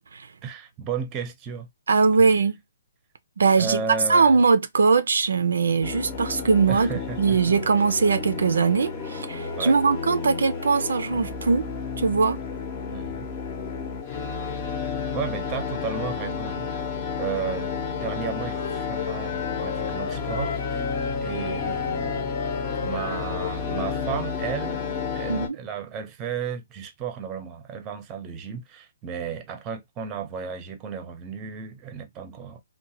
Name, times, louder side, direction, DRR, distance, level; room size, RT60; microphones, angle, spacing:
voice 1, 0.4-1.7 2.2-2.3 3.6-4.4 6.7-7.4 9.6-9.7 12.9-13.3 14.8-16.7 17.2-22.3 22.8-24.8 25.1-32.6, right 7 dB, 20° right, 0.6 m, -34 dB
voice 2, 1.9-2.6 3.4-3.8 4.1-6.9 7.2-11.7 12.0-12.4 25.3-25.6, right 4 dB, 80° right, 0.4 m, -21 dB
sound 1, 5.8-25.5, left 5 dB, 30° left, 0.7 m, -31 dB
Wind instrument woodwind instrument, 18.5-24.0, left 7 dB, 65° left, 0.3 m, -35 dB
2.8 x 2.1 x 2.7 m
hypercardioid pair, 145°, 0 cm